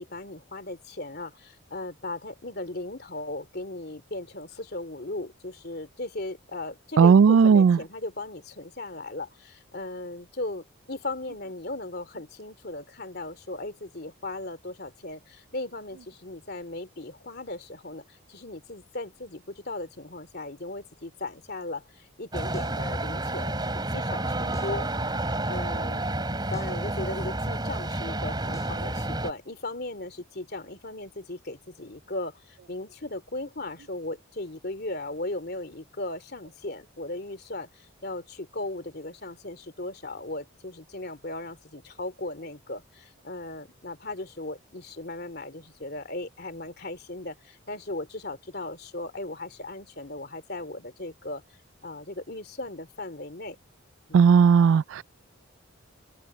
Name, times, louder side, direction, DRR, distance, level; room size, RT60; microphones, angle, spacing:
voice 1, 0.0-25.2 25.5-26.1 26.5-51.4 51.8-53.6 54.1-54.3, left 2 dB, 50° left, 3.0 m, -37 dB
voice 2, 7.0-7.8 54.1-55.0, right 6 dB, 70° right, 0.3 m, -16 dB
sound 1, 22.3-29.3, right 1 dB, 20° right, 4.1 m, -30 dB
sound 2, 22.5-22.8 24.5-24.8 26.5-26.8 28.5-28.8, equal, 15° left, 7.3 m, -43 dB
head